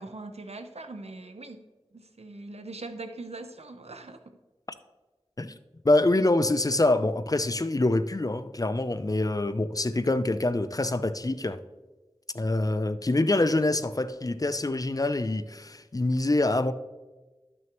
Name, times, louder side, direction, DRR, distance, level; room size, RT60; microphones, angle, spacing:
voice 1, 0.0-1.6 1.9-4.4 12.5-12.6, right 2 dB, 85° right, 0.7 m, -41 dB
voice 2, 5.8-11.6 12.3-16.7, left 2 dB, 35° left, 0.4 m, -25 dB
12.5 x 6.2 x 3.0 m
wide cardioid pair, 45°, 11 cm